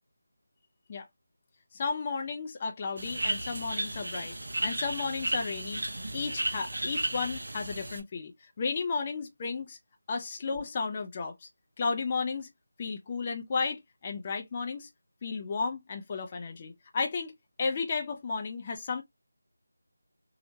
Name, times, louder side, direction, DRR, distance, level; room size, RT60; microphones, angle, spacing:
voice 1, 1.7-4.3 4.6-5.8 6.1-8.3 8.6-9.8 10.1-11.5 11.8-12.5 12.8-14.9 15.2-19.0, left 4 dB, 25° left, 0.4 m, -33 dB
sound 1, 3.0-8.0, right 1 dB, 70° right, 0.8 m, -34 dB
2.9 x 2.0 x 2.7 m
figure-of-eight pair, 165°, 0 cm